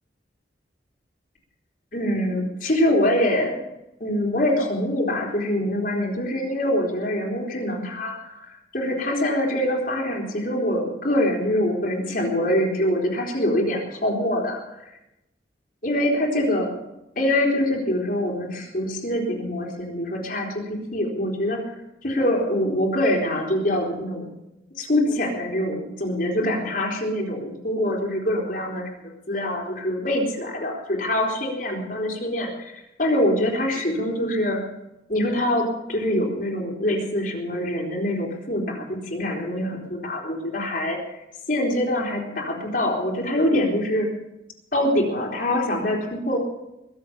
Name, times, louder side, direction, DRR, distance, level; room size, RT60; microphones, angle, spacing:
voice 1, 1.9-3.5 4.0-14.6 15.8-16.7 17.2-21.6 22.0-24.3 24.8-28.9 29.3-34.6 35.1-41.0 41.5-44.1 44.7-46.4, left 1 dB, 50° left, -1 dB, 3.7 m, -24 dB
22.0 x 7.7 x 6.9 m, 0.89 s
head